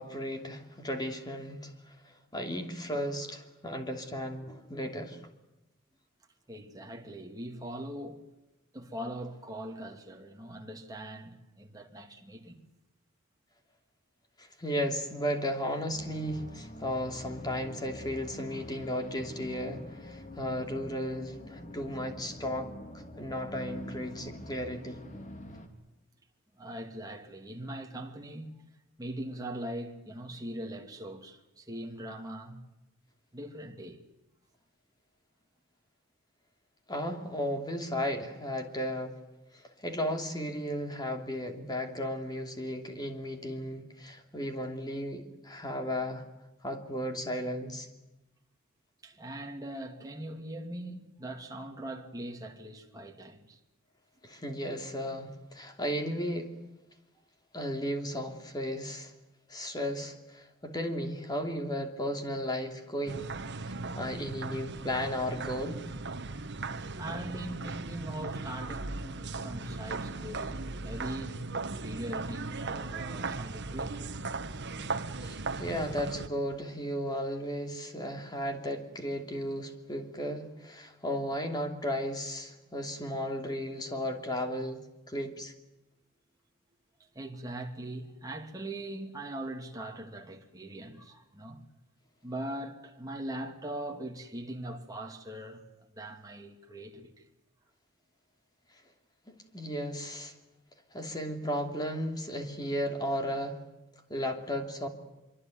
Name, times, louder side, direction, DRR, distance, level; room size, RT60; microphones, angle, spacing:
voice 1, 0.0-2.0 2.3-5.2 14.4-22.7 23.2-25.0 36.9-39.2 39.5-46.2 46.6-47.9 54.2-56.5 57.5-59.1 59.5-63.3 63.6-65.8 75.2-84.8 85.1-85.5 99.3-100.3 100.9-103.6 104.1-104.9, equal, 20° left, 2.9 m, -35 dB
voice 2, 6.5-8.3 8.7-12.6 26.5-28.5 29.0-32.6 33.3-34.0 49.0-53.6 67.0-71.4 71.8-74.1 87.1-91.6 92.2-95.6 96.0-97.3, right 1 dB, 15° right, 2.7 m, -41 dB
sound 1, 15.9-25.7, left 1 dB, 35° left, 3.2 m, -46 dB
sound 2, 63.1-76.3, right 3 dB, 50° right, 1.3 m, -37 dB
24.5 x 24.5 x 9.3 m
head